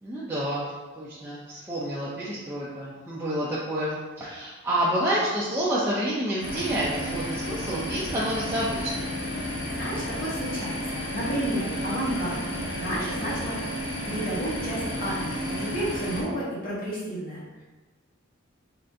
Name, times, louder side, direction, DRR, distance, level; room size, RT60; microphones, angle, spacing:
voice 1, 0.0-9.1, right 1 dB, 10° right, -9 dB, 0.5 m, -29 dB
sound 1, 6.4-16.2, equal, 75° left, 1.0 m, -32 dB
voice 2, 9.8-17.6, equal, 45° left, -8 dB, 1.2 m, -32 dB
3.8 x 3.3 x 2.6 m, 1.2 s
head